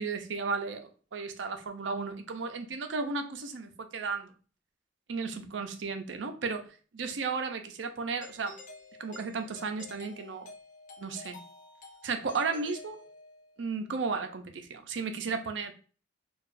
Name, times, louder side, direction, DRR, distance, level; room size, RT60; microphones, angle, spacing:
voice 1, 0.0-4.3 5.1-6.6 6.9-8.6 9.0-10.5 11.0-11.4 12.0-13.0 13.6-15.7, right 4 dB, 75° right, 0.5 m, -34 dB
Doorbell, 8.2-13.6, left 3 dB, 45° left, 0.6 m, -50 dB
4.7 x 2.3 x 2.5 m
head